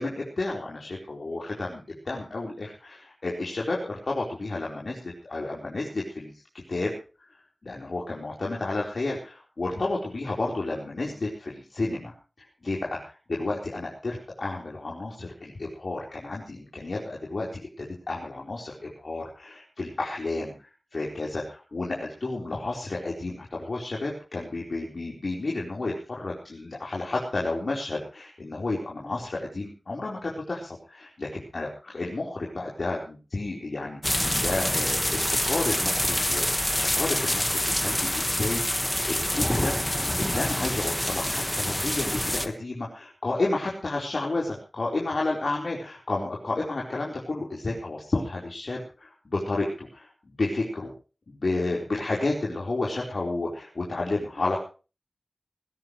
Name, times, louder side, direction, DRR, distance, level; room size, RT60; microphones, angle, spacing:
voice 1, 0.0-6.4 6.7-6.9 7.6-17.5 17.8-35.2 35.5-38.8 39.1-39.7 40.2-50.9 51.3-54.6, left 2 dB, 80° left, -3 dB, 4.4 m, -31 dB
sound 1, 34.0-42.5, equal, 10° left, 1.6 m, -26 dB
20.5 x 16.5 x 3.2 m, 0.35 s
wide cardioid pair, 70°, 0 cm